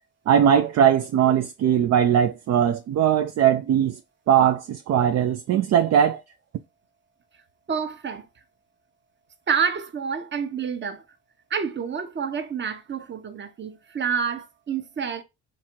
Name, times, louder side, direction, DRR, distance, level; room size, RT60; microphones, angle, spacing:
voice 1, 0.3-4.0 4.3-6.2, right 9 dB, 60° right, 0.5 m, -20 dB
voice 2, 7.7-8.3 9.5-11.0 11.5-15.2, right 6 dB, 40° right, 0.9 m, -28 dB
4.3 x 2.5 x 4.4 m
cardioid pair, 90°, 30 cm